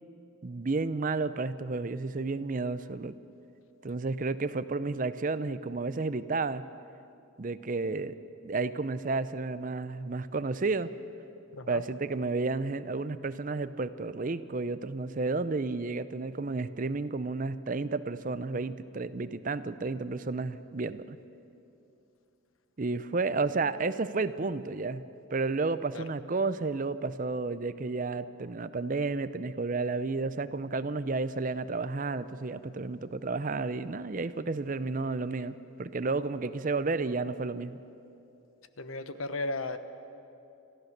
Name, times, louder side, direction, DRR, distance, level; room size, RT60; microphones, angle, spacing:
voice 1, 0.4-3.1 3.8-6.6 7.4-8.1 8.4-10.9 11.7-21.2 22.8-25.0 25.3-37.8, right 3 dB, 40° right, 14 dB, 0.5 m, -32 dB
voice 2, 38.8-39.8, left 2 dB, 80° left, 11 dB, 1.0 m, -35 dB
27.0 x 14.5 x 6.6 m, 2.7 s
head